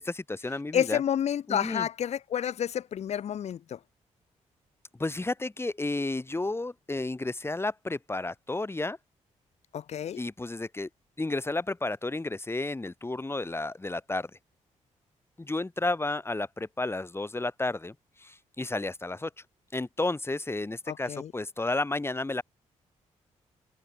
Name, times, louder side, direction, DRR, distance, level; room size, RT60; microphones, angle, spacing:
voice 1, 0.0-1.0 1.5-1.9 5.0-9.0 10.2-10.9 11.2-14.3 15.4-17.9 18.2-19.3 19.7-22.4, left 2 dB, 20° left, 1.9 m, -32 dB
voice 2, 0.7-3.8 9.7-10.2 20.9-21.3, left 9 dB, 55° left, 0.5 m, -29 dB
cardioid pair, 70°, 13 cm